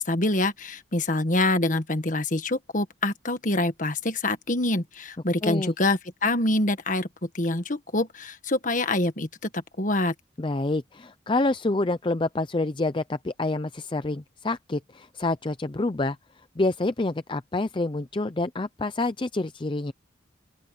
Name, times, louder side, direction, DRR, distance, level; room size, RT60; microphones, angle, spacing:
voice 1, 0.1-7.1 7.3-10.1, left 2 dB, 45° left, 1.6 m, -26 dB
voice 2, 5.4-5.7 10.4-16.2 16.6-19.9, left 2 dB, 25° left, 0.5 m, -27 dB
open air
head